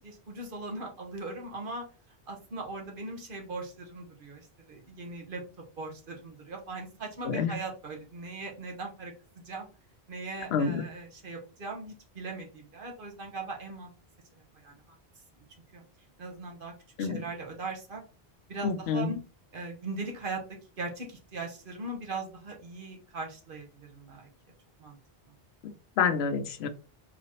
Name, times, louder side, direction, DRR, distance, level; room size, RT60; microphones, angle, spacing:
voice 1, 0.0-1.9 2.3-5.4 5.8-9.7 10.1-13.9 14.5-15.0 15.7-15.8 16.2-16.7 17.0-18.0 18.5-19.2 19.5-20.4 20.8-24.3 24.8-25.0, right 3 dB, 60° right, 1 dB, 1.1 m, -39 dB
voice 2, 7.2-7.6 10.5-10.8 17.0-17.2 18.6-19.2 25.6-26.7, left 6 dB, 80° left, 10 dB, 0.8 m, -28 dB
4.1 x 2.8 x 2.9 m, 0.36 s
omnidirectional pair, 1.0 m